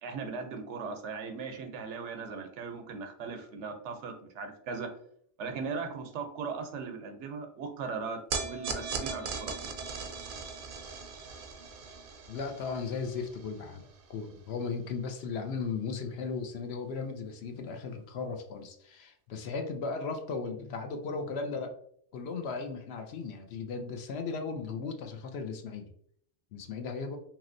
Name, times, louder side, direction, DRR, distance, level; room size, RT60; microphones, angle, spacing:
voice 1, 0.0-4.9 5.4-9.7, right 5 dB, 85° right, 6 dB, 0.9 m, -38 dB
sound 1, 8.3-14.7, right 5 dB, 60° right, 0.6 m, -39 dB
voice 2, 12.3-13.8 14.1-21.7 22.1-25.9 26.5-27.2, left 4 dB, 70° left, 5 dB, 0.8 m, -36 dB
2.9 x 2.9 x 2.5 m, 0.65 s
omnidirectional pair, 1.2 m